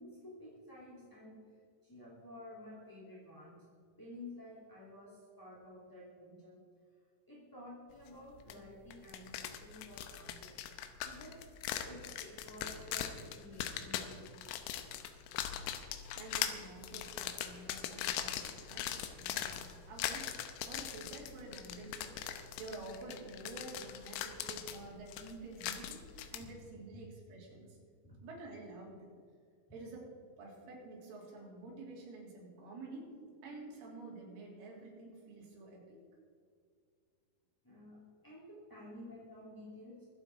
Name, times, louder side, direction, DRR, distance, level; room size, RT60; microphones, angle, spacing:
voice 1, 0.0-1.4 1.8-3.6 4.0-6.6 7.3-10.6 11.0-11.4 11.8-14.3 28.0-28.2 33.1-33.2 37.6-40.0, left 1 dB, 10° left, -7 dB, 1.2 m, -52 dB
sound 1, 8.5-8.6 8.9-26.4, left 10 dB, 85° left, 3.5 m, -41 dB
voice 2, 16.2-20.4 20.7-26.0 26.3-27.8 28.2-29.1 29.7-30.1 30.4-33.1 33.4-36.0, right 2 dB, 70° right, -3 dB, 5.9 m, -49 dB
23.5 x 8.3 x 4.7 m, 2.2 s
omnidirectional pair, 5.9 m